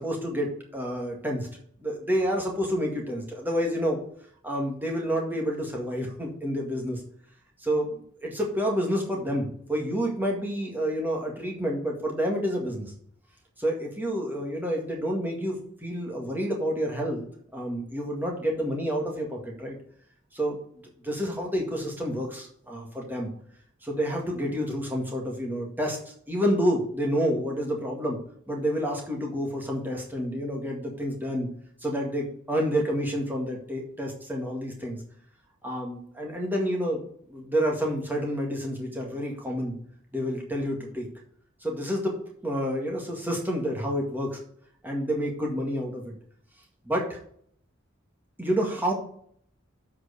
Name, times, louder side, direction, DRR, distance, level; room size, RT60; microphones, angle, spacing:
voice 1, 0.0-1.5 1.8-4.0 4.4-7.0 7.6-12.9 13.6-17.3 17.5-19.8 20.3-23.3 23.8-28.2 28.5-31.5 31.8-35.0 35.6-37.0 37.3-39.7 40.1-41.1 41.6-44.4 44.8-46.1 46.9-47.2 48.4-48.9, equal, 10° right, -1 dB, 1.9 m, -29 dB
7.8 x 4.9 x 6.5 m, 0.64 s
head